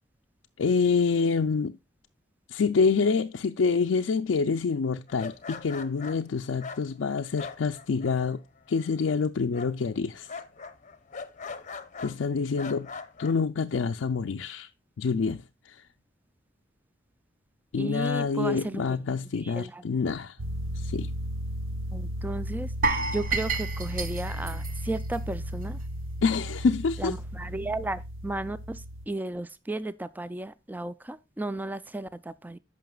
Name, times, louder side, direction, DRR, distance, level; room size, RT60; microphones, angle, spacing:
voice 1, 0.6-1.8 2.5-8.4 8.7-10.3 12.0-12.9 13.2-14.7 15.0-15.8 17.7-20.4 20.7-21.1 26.2-27.2, left 5 dB, 70° left, 0.4 m, -27 dB
sound 1, 5.1-8.4 8.6-9.2 9.5-12.2 12.6-13.4, left 5 dB, 40° left, 0.7 m, -41 dB
voice 2, 17.8-18.8 19.4-19.8 21.9-25.8 27.0-28.8 29.1-32.6, right 2 dB, 10° right, 0.4 m, -34 dB
sound 2, 20.4-29.0, equal, 85° right, 1.0 m, -35 dB
sound 3, 22.8-25.8 26.1-26.3 26.8-26.9, right 3 dB, 45° right, 1.1 m, -31 dB
15.0 x 5.7 x 2.3 m
head